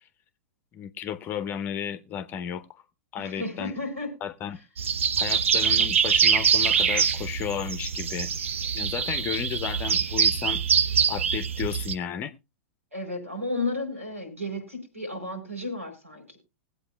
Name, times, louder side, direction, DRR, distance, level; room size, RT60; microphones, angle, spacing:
voice 1, 0.7-2.8 3.1-3.7 4.2-4.6 5.2-8.3 8.7-10.6 11.1-12.3, left 9 dB, 25° left, 0.7 m, -33 dB
voice 2, 3.2-4.1 12.9-16.4, left 2 dB, 90° right, 4.7 m, -33 dB
sound 1, 4.8-11.9, right 7 dB, 65° right, 0.7 m, -24 dB
21.0 x 8.1 x 2.2 m
figure-of-eight pair, 100°, 7 cm